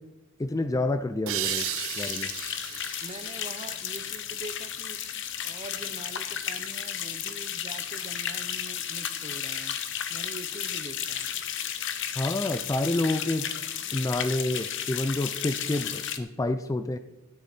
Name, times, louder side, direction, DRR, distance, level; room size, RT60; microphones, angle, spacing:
voice 1, 0.4-2.3 12.2-13.5 13.9-17.0, left 2 dB, 15° left, 11 dB, 0.3 m, -28 dB
sound 1, 1.3-4.7, right 15 dB, 65° right, 0.5 m, -35 dB
sound 2, 1.4-16.2, left 9 dB, 55° left, 0.9 m, -33 dB
voice 2, 3.0-5.0 5.4-9.8 10.1-11.3, right 2 dB, 30° right, 11 dB, 0.7 m, -43 dB
12.5 x 9.8 x 4.4 m, 1.0 s
head